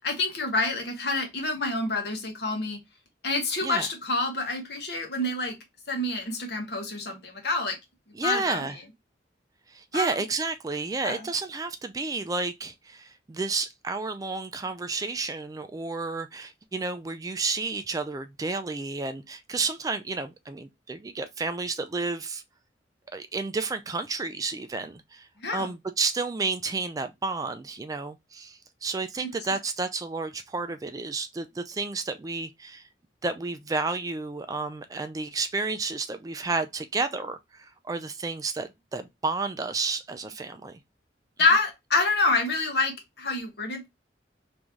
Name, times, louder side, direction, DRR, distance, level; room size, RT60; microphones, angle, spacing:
voice 1, 0.0-2.8 3.2-5.6 5.9-7.8 8.2-8.6 9.9-10.2 11.0-11.3 25.4-25.7 29.2-29.6 41.4-43.9, left 3 dB, 65° left, 1.1 m, -27 dB
voice 2, 8.1-8.8 9.7-22.4 23.1-32.9 33.2-40.8, right 3 dB, 20° right, 0.3 m, -31 dB
3.1 x 2.6 x 3.5 m
head